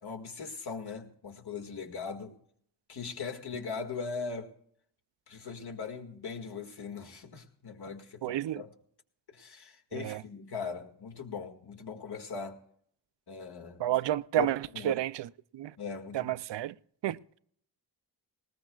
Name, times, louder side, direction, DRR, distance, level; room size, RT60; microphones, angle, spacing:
voice 1, 0.0-2.4 2.9-4.5 5.3-8.7 9.3-12.6 13.3-13.8 14.4-14.5 14.7-15.0 15.8-16.3, left 5 dB, 65° left, 1.9 m, -40 dB
voice 2, 8.2-8.6 9.9-10.2 13.8-15.7 16.1-16.7 17.0-17.2, right 13 dB, 85° right, 0.5 m, -31 dB
20.0 x 20.0 x 2.3 m
wide cardioid pair, 160°, 42 cm